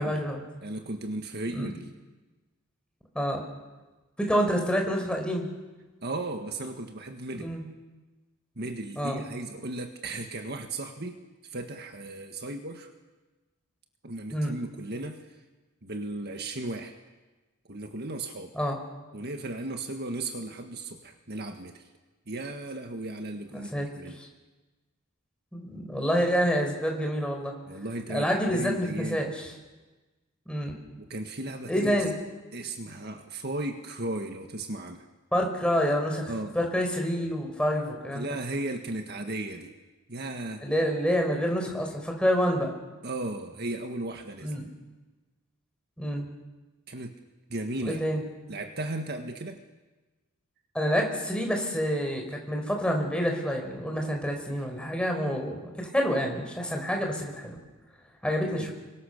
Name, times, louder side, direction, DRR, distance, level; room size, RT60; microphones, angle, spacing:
voice 1, 0.0-0.4 1.5-1.8 3.1-3.4 4.2-5.5 7.3-7.6 9.0-9.2 14.3-14.5 18.5-18.8 23.5-23.9 24.2-24.3 25.5-27.5 28.1-29.5 30.5-30.7 31.7-32.1 35.3-38.4 40.6-42.8 44.4-44.6 46.0-46.3 47.8-48.2 50.7-57.6 58.2-58.7, equal, 5° left, 1 dB, 4.9 m, -28 dB
voice 2, 0.6-1.8 6.0-7.5 8.6-11.2 11.5-12.9 14.0-15.2 15.8-16.9 17.7-18.5 19.1-21.8 22.3-24.2 27.7-29.3 31.0-32.0 32.5-35.1 36.3-36.6 38.1-39.7 40.1-40.6 43.0-44.5 46.9-47.1 47.5-48.0 48.5-49.6 58.6-58.7, right 2 dB, 50° right, 5 dB, 1.8 m, -35 dB
30.0 x 24.0 x 6.8 m, 1.2 s
head